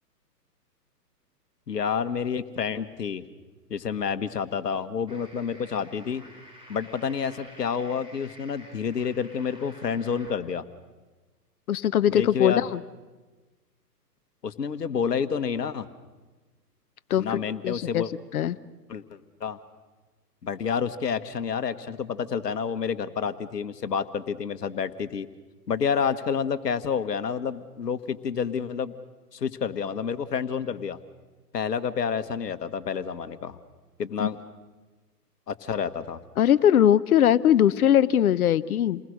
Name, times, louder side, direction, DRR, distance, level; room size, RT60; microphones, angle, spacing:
voice 1, 1.7-3.2 3.7-6.3 6.7-10.6 12.1-12.6 14.4-15.9 17.2-18.1 18.9-19.6 20.4-25.3 25.7-28.9 29.3-31.0 31.5-33.6 34.0-34.4 35.5-36.2, left 6 dB, 75° left, 11 dB, 1.5 m, -29 dB
sound 1, 5.1-10.3, equal, 10° right, 3.2 m, -50 dB
voice 2, 11.7-12.8 17.1-18.0 18.3-18.6 34.2-34.3 36.4-39.0, left 10 dB, 60° left, 16 dB, 0.9 m, -21 dB
29.0 x 20.5 x 6.5 m, 1.3 s
hypercardioid pair, 125°, 48 cm